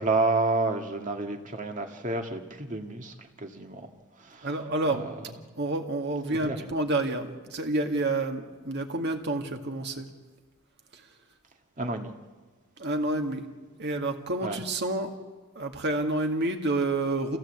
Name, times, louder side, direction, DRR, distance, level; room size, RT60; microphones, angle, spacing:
voice 1, 0.0-3.9 4.2-4.5 4.9-5.1 6.4-6.6 11.8-12.1 14.4-14.6, right 3 dB, 40° right, 3 dB, 1.9 m, -30 dB
voice 2, 4.4-5.0 5.6-10.1 10.9-11.0 12.8-13.5 13.8-15.2 15.6-17.4, right 2 dB, 55° right, 4 dB, 2.0 m, -29 dB
27.5 x 16.5 x 8.1 m, 1.4 s
head